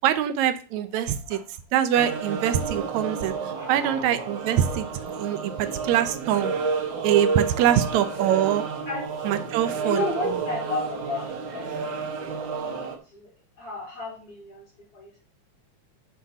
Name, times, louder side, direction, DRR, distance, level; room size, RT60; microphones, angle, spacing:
voice 1, 0.0-1.4 1.7-6.6 7.0-8.6 9.3-10.1, right 11 dB, 75° right, 11 dB, 2.1 m, -24 dB
voice 2, 0.9-1.4 3.5-4.0 7.6-7.7 8.9-9.1 9.8-13.3 13.6-15.2, left 3 dB, 30° left, -4 dB, 4.0 m, -34 dB
sound 1, 1.9-13.0, right 5 dB, 50° right, 1.6 m, -30 dB
9.6 x 6.2 x 4.2 m, 0.37 s
omnidirectional pair, 3.3 m